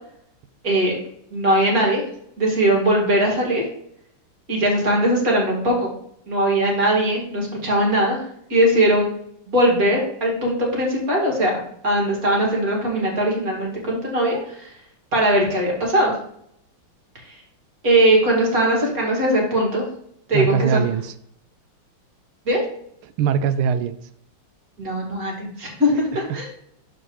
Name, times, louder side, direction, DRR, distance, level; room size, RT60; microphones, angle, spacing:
voice 1, 0.6-1.0 1.3-2.0 2.4-3.6 4.5-5.9 6.3-8.2 8.5-9.1 9.5-11.5 11.8-14.7 15.1-16.1 17.8-19.9 20.3-20.8 22.5-22.6 24.8-26.5, right 1 dB, 45° right, -1 dB, 2.7 m, -20 dB
voice 2, 20.3-21.1 23.0-24.0 26.1-26.5, right 7 dB, 90° right, 12 dB, 1.5 m, -22 dB
12.0 x 4.6 x 3.2 m, 0.71 s
omnidirectional pair, 2.3 m